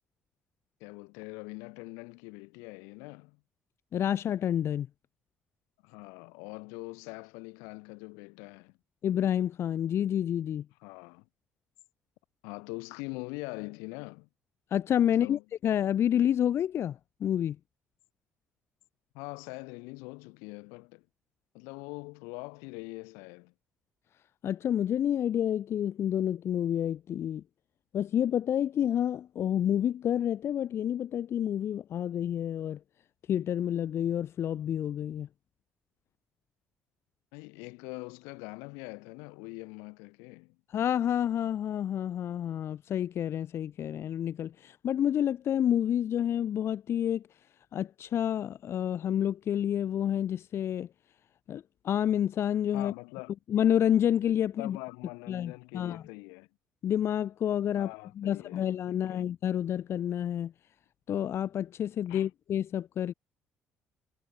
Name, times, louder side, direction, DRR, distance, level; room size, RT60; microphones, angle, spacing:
voice 1, 0.8-3.4 5.8-8.7 10.8-11.3 12.4-14.3 15.1-15.4 19.1-21.1 21.5-23.5 37.3-40.6 52.7-53.4 54.6-56.5 57.8-59.3 62.1-62.3, left 31 dB, 85° left, 5.2 m, -43 dB
voice 2, 3.9-4.9 9.0-10.6 14.7-17.6 24.4-27.4 27.9-32.8 33.3-35.3 40.7-47.2 47.7-50.9 51.5-52.9 53.5-54.8 55.3-56.0 56.8-57.9 58.2-60.5 61.1-63.1, left 10 dB, 60° left, 1.0 m, -29 dB
supercardioid pair, 65°, 5 cm